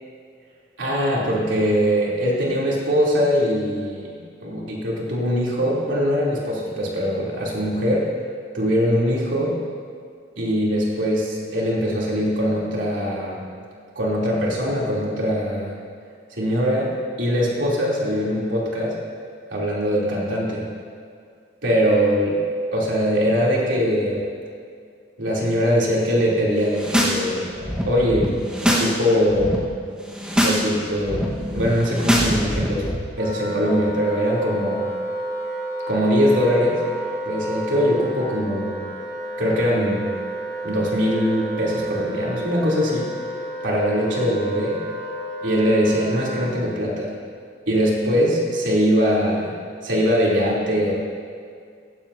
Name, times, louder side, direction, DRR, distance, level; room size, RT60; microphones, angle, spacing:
voice 1, 0.8-8.1 8.5-9.6 10.4-13.4 13.9-15.7 16.4-19.0 19.5-20.6 21.6-22.4 22.7-24.2 25.2-27.5 27.8-28.3 28.6-29.5 30.3-32.9 33.2-34.9 35.9-36.8 37.2-38.8 39.4-40.2 40.6-43.1 43.6-44.8 45.4-47.1 47.7-49.5 49.8-50.9, equal, 90° right, -5 dB, 3.3 m, -22 dB
sound 1, 26.6-27.2 27.5-28.9 29.2-29.6 30.0-30.6 30.9-32.9, equal, 5° right, 1.4 m, -23 dB
Wind instrument woodwind instrument, 33.2-46.5, right 1 dB, 60° right, 2.8 m, -31 dB
16.0 x 15.0 x 2.8 m, 2.2 s
head